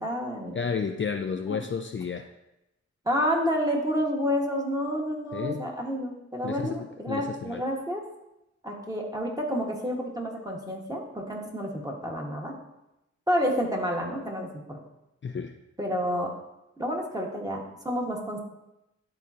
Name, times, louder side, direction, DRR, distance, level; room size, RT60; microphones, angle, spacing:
voice 1, 0.0-0.6 1.5-1.6 3.0-8.0 8.6-12.5 13.3-14.8 15.8-16.3 16.8-18.4, equal, 10° right, -1 dB, 1.7 m, -29 dB
voice 2, 0.5-2.3 5.3-5.7 6.4-6.8 7.1-7.6 15.2-15.5, left 6 dB, 40° left, 6 dB, 0.5 m, -31 dB
11.0 x 3.9 x 2.9 m, 0.91 s
cardioid pair, 40°, 30 cm